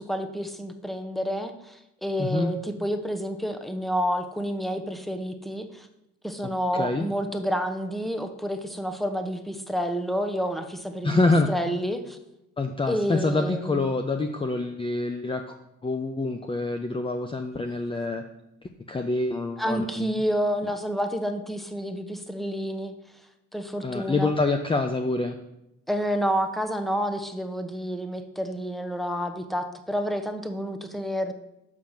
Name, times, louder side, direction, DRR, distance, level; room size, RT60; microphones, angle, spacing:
voice 1, 0.0-5.9 6.2-11.2 11.5-12.2 12.9-13.8 19.6-22.9 23.5-24.3 25.9-31.3, equal, ahead, 7 dB, 1.0 m, -29 dB
voice 2, 2.2-2.5 6.7-7.1 11.0-11.5 12.6-15.6 15.8-18.2 18.9-20.1 23.8-25.4, left 2 dB, 15° left, 6 dB, 0.6 m, -26 dB
6.5 x 5.8 x 7.2 m, 0.89 s
cardioid pair, 90°, 30 cm